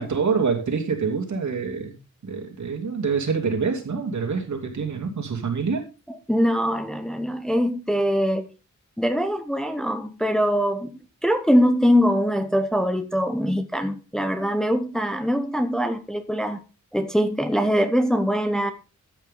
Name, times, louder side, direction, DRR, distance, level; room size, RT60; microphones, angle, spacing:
voice 1, 0.0-1.9 2.2-5.9, right 5 dB, 65° right, 3 dB, 3.1 m, -26 dB
voice 2, 6.1-8.4 9.0-16.6 16.9-18.7, equal, ahead, 7 dB, 0.9 m, -23 dB
13.5 x 8.9 x 3.8 m, 0.30 s
wide cardioid pair, 175°, 31 cm